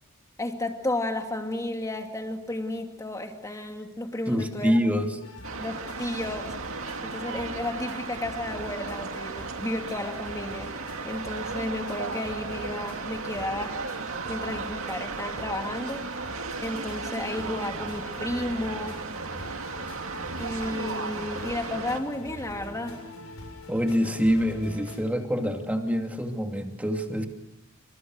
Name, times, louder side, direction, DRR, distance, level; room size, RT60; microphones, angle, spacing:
voice 1, 0.4-4.8 5.6-6.6 7.0-13.7 14.3-16.0 16.6-19.0 20.4-22.9, left 1 dB, 15° left, 4 dB, 2.7 m, -33 dB
voice 2, 4.3-5.1 23.7-27.3, equal, 5° right, 4 dB, 2.5 m, -25 dB
sound 1, 5.2-25.0, left 1 dB, 65° left, 7.4 m, -44 dB
sound 2, 5.4-22.0, right 4 dB, 65° right, 2.3 m, -35 dB
28.5 x 26.0 x 6.4 m, 0.83 s
head